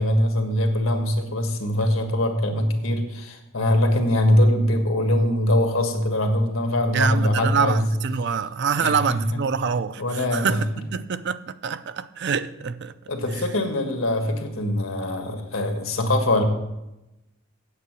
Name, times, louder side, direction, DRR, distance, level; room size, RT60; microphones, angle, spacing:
voice 1, 0.0-7.9 8.8-9.2 10.0-10.6 13.1-16.4, left 1 dB, 90° left, 1.6 m, -22 dB
voice 2, 6.9-12.9, right 6 dB, 55° right, 0.5 m, -25 dB
8.6 x 8.2 x 6.1 m
head